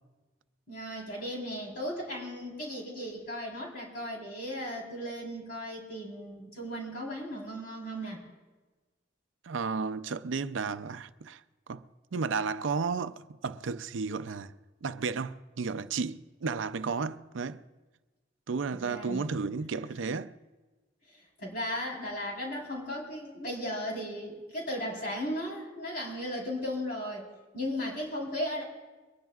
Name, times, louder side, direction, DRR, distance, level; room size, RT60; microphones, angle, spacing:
voice 1, 0.7-8.2 18.7-19.4 19.7-19.8 21.1-27.3 27.5-28.6, equal, 50° left, 3.9 m, -36 dB
voice 2, 9.4-11.4 11.7-11.8 12.1-14.5 14.8-17.6 18.5-20.3, right 5 dB, 85° right, 0.5 m, -33 dB
23.0 x 19.5 x 2.4 m
head